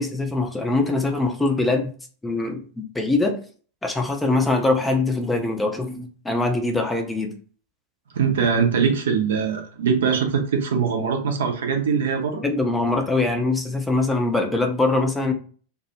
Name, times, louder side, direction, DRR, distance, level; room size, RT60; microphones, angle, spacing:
voice 1, 0.0-1.9 2.2-3.4 3.8-7.3 12.4-15.3, left 2 dB, 10° left, 3 dB, 0.5 m, -23 dB
voice 2, 8.1-12.4, right 6 dB, 60° right, 3 dB, 0.6 m, -22 dB
2.2 x 2.0 x 2.9 m, 0.41 s
figure-of-eight pair, 90°, 0 cm